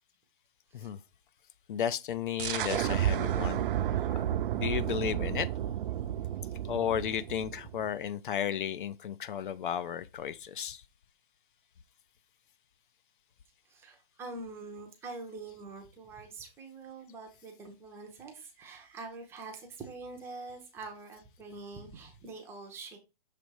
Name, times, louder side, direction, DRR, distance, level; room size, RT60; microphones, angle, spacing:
voice 1, 1.7-3.6 4.5-5.5 6.7-10.8, left 9 dB, 60° left, 0.5 m, -33 dB
sound 1, 2.4-7.9, right 11 dB, 60° right, 0.5 m, -32 dB
voice 2, 13.7-23.0, right 3 dB, 10° right, 0.6 m, -45 dB
6.7 x 3.1 x 4.6 m
hypercardioid pair, 160°, 30 cm